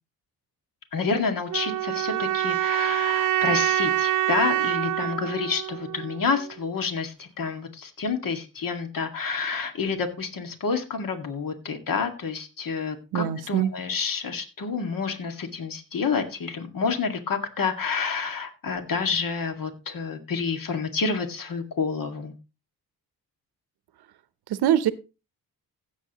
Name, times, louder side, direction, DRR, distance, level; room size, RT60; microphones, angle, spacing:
voice 1, 0.9-22.3, left 5 dB, 60° left, 6 dB, 2.1 m, -29 dB
sound 1, 1.5-6.5, right 13 dB, 55° right, 0.5 m, -26 dB
voice 2, 13.1-13.7 24.5-24.9, right 10 dB, 85° right, 14 dB, 0.9 m, -23 dB
16.0 x 7.4 x 3.0 m, 0.30 s
cardioid pair, 70°, 38 cm